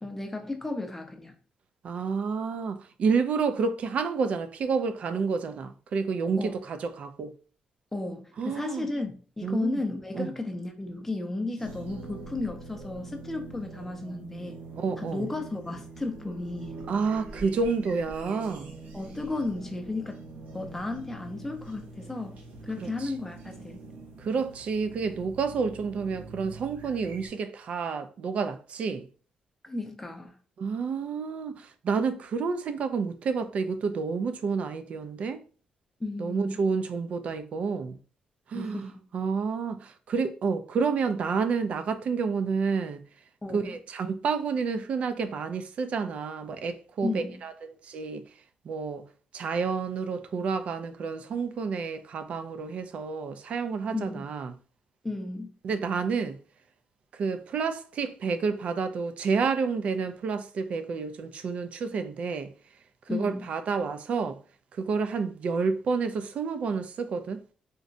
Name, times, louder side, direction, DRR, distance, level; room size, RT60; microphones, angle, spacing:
voice 1, 0.0-1.3 6.4-6.6 7.9-14.5 15.0-16.7 18.9-20.2 20.5-23.8 29.6-30.4 36.0-36.7 38.5-39.0 43.4-43.8 47.0-47.4 53.9-54.3 55.0-55.5 63.1-63.5, left 2 dB, 10° left, 0.5 m, -34 dB
voice 2, 1.8-7.3 8.4-8.9 9.4-9.8 10.1-10.3 14.8-15.3 16.9-18.7 22.8-23.1 24.2-29.1 30.6-35.4 36.2-38.0 38.5-43.0 43.5-47.5 47.8-48.2 48.6-49.0 49.3-54.5 55.6-56.4 57.1-62.5 63.1-64.4 64.7-67.4, right 5 dB, 55° right, 0.3 m, -29 dB
sound 1, 11.6-27.3, right 3 dB, 75° right, 0.7 m, -44 dB
3.8 x 2.1 x 2.5 m
cardioid pair, 145°, 3 cm